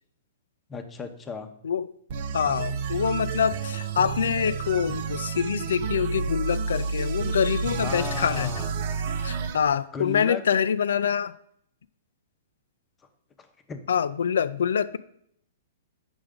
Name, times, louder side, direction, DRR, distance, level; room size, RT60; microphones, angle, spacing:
voice 1, 0.7-1.5 7.8-8.7 9.9-10.4 13.4-13.8, left 5 dB, 15° left, 0.9 m, -35 dB
sound 1, 2.1-9.6, right 5 dB, 50° right, 0.7 m, -30 dB
voice 2, 2.3-8.5 9.2-11.3 13.9-15.0, left 7 dB, 80° left, 0.4 m, -25 dB
8.8 x 6.0 x 3.7 m
hypercardioid pair, 140°, 0 cm